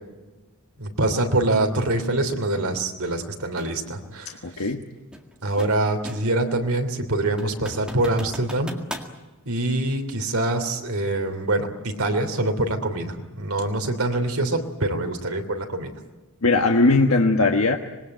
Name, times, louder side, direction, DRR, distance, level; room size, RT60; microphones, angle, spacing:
voice 1, 0.8-4.7 5.4-8.7 9.4-15.9, right 2 dB, 75° right, 5 dB, 3.2 m, -25 dB
sound 1, 3.6-3.8 5.1-6.4 6.8-6.9 7.4-9.1, equal, 5° right, 1.9 m, -38 dB
voice 2, 4.4-4.8 16.4-17.8, left 3 dB, 75° left, 3 dB, 1.3 m, -19 dB
26.0 x 20.5 x 9.0 m, 1.2 s
head